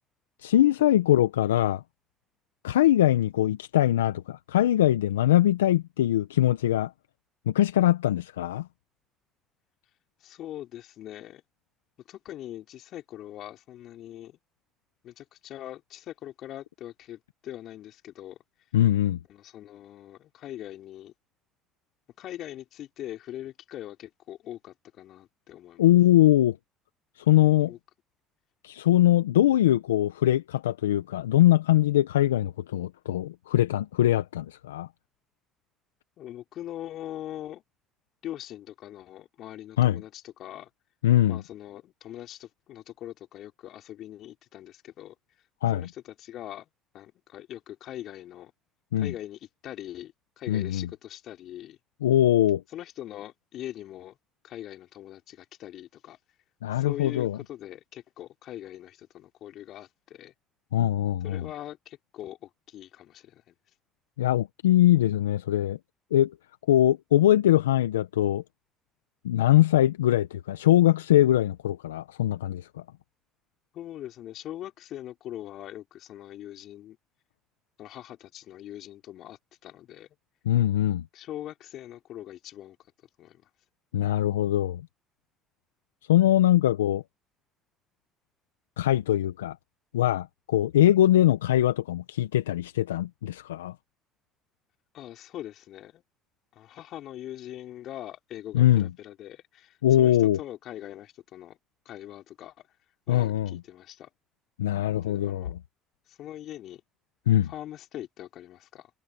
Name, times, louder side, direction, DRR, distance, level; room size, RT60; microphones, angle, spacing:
voice 1, 0.4-1.8 2.6-6.9 7.5-8.7 18.7-19.2 25.8-26.6 27.3-27.7 28.6-34.9 39.8-40.0 41.0-41.4 45.6-45.9 48.9-49.1 50.5-50.9 52.0-52.6 56.6-57.4 60.7-61.4 64.2-65.8 66.1-66.3 66.7-68.4 69.2-72.7 80.4-81.0 83.9-84.8 86.1-87.0 88.8-89.5 89.9-93.7 98.5-98.9 99.8-100.4 103.1-103.5 104.6-105.5 107.3-107.5, left 13 dB, 85° left, 1.3 m, -22 dB
voice 2, 10.2-11.4 12.1-14.4 15.0-18.4 19.3-21.1 22.2-25.9 27.6-27.8 36.2-37.6 38.2-40.7 41.3-45.1 45.7-46.7 46.9-48.5 49.0-51.8 52.7-54.2 54.4-56.2 56.7-60.3 61.2-63.5 73.7-77.0 77.8-80.1 81.1-82.8 83.2-83.4 94.9-96.0 96.5-101.6 101.8-102.5 103.1-104.1 104.9-105.5 106.1-106.8 107.4-108.9, left 12 dB, 60° left, 5.1 m, -42 dB
hypercardioid pair, 60°, 0 cm